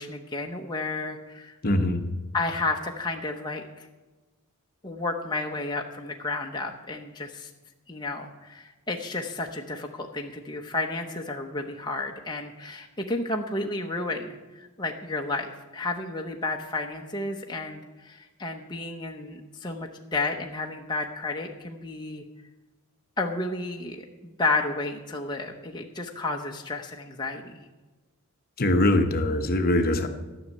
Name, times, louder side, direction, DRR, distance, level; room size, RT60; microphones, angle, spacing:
voice 1, 0.0-1.6 2.3-3.9 4.8-7.5 7.9-22.2 23.2-27.7, left 2 dB, 20° left, 1 dB, 0.9 m, -32 dB
voice 2, 1.6-2.0 28.6-30.1, left 1 dB, 45° left, 6 dB, 1.1 m, -22 dB
13.0 x 6.4 x 9.5 m, 1.2 s
head